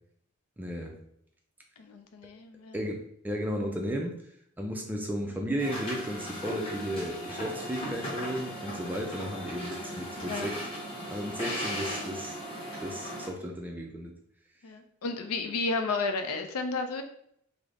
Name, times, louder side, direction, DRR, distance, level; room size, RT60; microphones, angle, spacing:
voice 1, 0.6-0.9 2.7-4.2 4.6-10.6 11.1-12.4 12.8-14.1, equal, 10° right, 1 dB, 0.3 m, -34 dB
voice 2, 1.8-2.8 5.3-5.4 9.3-9.5 9.8-10.5 14.6-17.0, left 3 dB, 80° left, 7 dB, 0.4 m, -33 dB
sound 1, 5.6-13.3, equal, 25° left, 0.8 m, -37 dB
3.4 x 2.0 x 3.6 m, 0.71 s
head